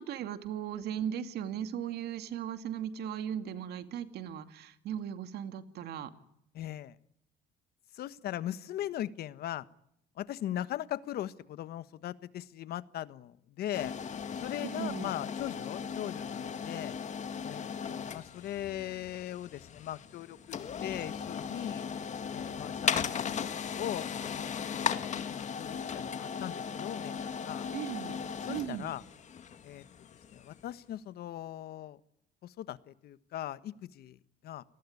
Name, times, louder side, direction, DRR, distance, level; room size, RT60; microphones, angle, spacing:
voice 1, 0.0-6.1 14.6-15.1 27.7-28.2 28.5-28.9, right 9 dB, 75° right, 9 dB, 2.5 m, -37 dB
voice 2, 6.5-7.0 7.9-9.6 10.2-13.9 14.3-17.0 17.4-21.8 22.3-23.2 23.6-24.3 24.7-27.7 28.4-29.0 29.6-29.8 30.3-32.0 32.4-34.2 34.4-34.6, left 12 dB, 65° left, 15 dB, 1.3 m, -39 dB
sound 1, 13.7-30.6, left 7 dB, 45° left, 2.2 m, -37 dB
29.0 x 19.5 x 9.6 m, 0.75 s
cardioid pair, 110°, 17 cm